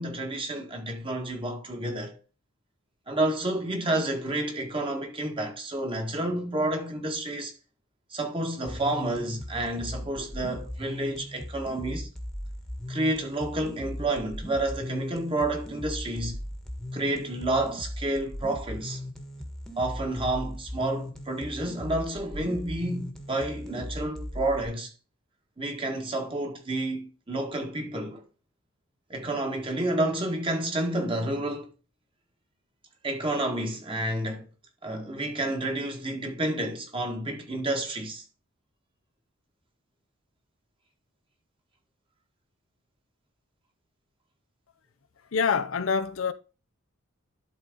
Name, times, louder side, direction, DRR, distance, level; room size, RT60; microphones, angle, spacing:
voice 1, 0.0-2.2 3.1-7.5 8.1-12.1 12.9-16.4 16.9-19.0 19.8-24.9 25.6-28.2 29.1-31.7 33.0-34.5 34.8-38.2, right 1 dB, 25° right, 1.8 m, -30 dB
sound 1, 8.7-24.7, left 1 dB, ahead, 1.5 m, -38 dB
voice 2, 45.3-46.3, left 6 dB, 65° left, 0.6 m, -25 dB
12.0 x 4.1 x 3.8 m
head